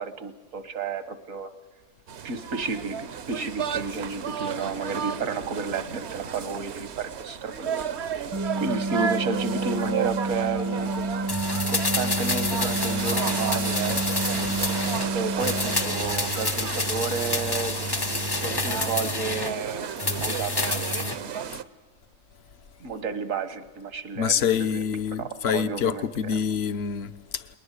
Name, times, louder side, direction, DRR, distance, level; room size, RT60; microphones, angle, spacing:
voice 1, 0.0-1.5 2.2-7.8 8.6-11.2 11.7-14.0 15.1-17.8 18.3-21.5 22.8-24.8 25.2-26.3, right 4 dB, 75° right, 1.7 m, -32 dB
sound 1, 2.1-21.6, right 7 dB, 60° right, 1.0 m, -33 dB
sound 2, 8.3-16.4, right 2 dB, 15° right, 0.7 m, -30 dB
sound 3, 11.3-15.1 15.4-19.5 20.0-21.2 21.5-21.6, left 2 dB, 25° left, 0.6 m, -28 dB
voice 2, 24.2-27.5, left 7 dB, 55° left, 1.1 m, -26 dB
20.5 x 20.0 x 8.3 m
omnidirectional pair, 1.4 m